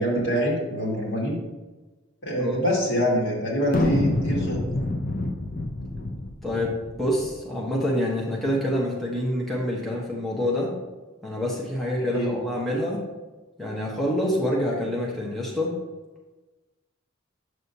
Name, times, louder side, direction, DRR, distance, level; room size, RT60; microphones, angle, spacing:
voice 1, 0.0-1.4 2.2-4.6 12.1-12.3, equal, 60° left, -4 dB, 2.2 m, -25 dB
sound 1, 3.7-7.3, left 2 dB, 40° left, 0.6 m, -27 dB
voice 2, 6.4-10.7 11.2-13.0 13.6-15.7, left 1 dB, ahead, -5 dB, 1.1 m, -26 dB
7.7 x 6.4 x 2.8 m, 1.2 s
head